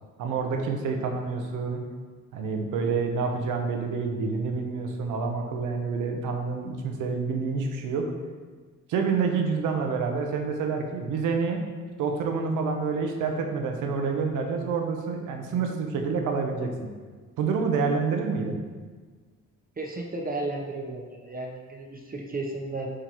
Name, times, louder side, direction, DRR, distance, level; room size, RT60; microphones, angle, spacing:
voice 1, 0.2-1.8 2.3-8.1 8.9-11.6 12.0-16.7 17.4-18.6, right 5 dB, 85° right, 3 dB, 0.9 m, -28 dB
voice 2, 19.8-22.9, right 2 dB, 30° right, 0 dB, 0.9 m, -34 dB
11.0 x 3.8 x 3.0 m, 1.4 s
cardioid pair, 90°, 30 cm